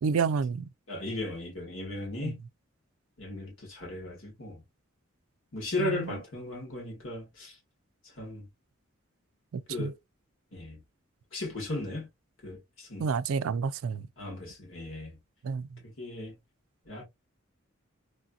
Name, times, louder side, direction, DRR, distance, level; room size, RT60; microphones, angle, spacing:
voice 1, 0.0-0.7 2.2-2.3 5.8-6.1 9.5-9.9 13.0-14.0 15.4-15.8, right 5 dB, 80° right, 0.4 m, -30 dB
voice 2, 0.9-2.4 3.2-4.6 5.5-7.6 8.0-8.5 9.7-10.0 10.5-10.8 11.3-12.1 12.4-13.1 14.2-15.2 15.8-16.4 16.9-17.0, left 2 dB, 65° left, 1.8 m, -36 dB
3.2 x 2.7 x 2.3 m
head